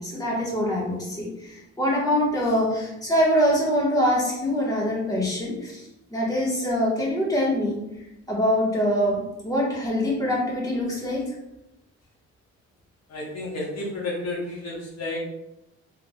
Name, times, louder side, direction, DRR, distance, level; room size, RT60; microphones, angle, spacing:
voice 1, 0.0-11.3, equal, 10° left, -5 dB, 1.5 m, -24 dB
voice 2, 13.1-15.2, left 2 dB, 60° left, -3 dB, 1.0 m, -31 dB
3.6 x 3.4 x 2.4 m, 0.89 s
cardioid pair, 90°, 30 cm